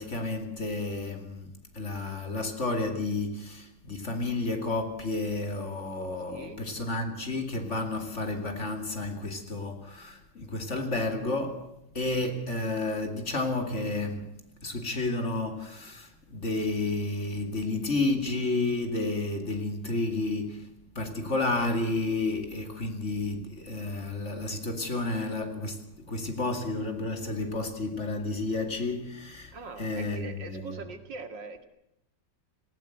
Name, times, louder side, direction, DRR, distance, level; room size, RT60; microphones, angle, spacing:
voice 1, 0.0-11.7 11.9-30.8, left 2 dB, 40° left, 2.8 m, -31 dB
voice 2, 6.3-6.6 29.5-31.7, right 3 dB, 85° right, 2.8 m, -42 dB
19.0 x 17.5 x 7.9 m
omnidirectional pair, 1.9 m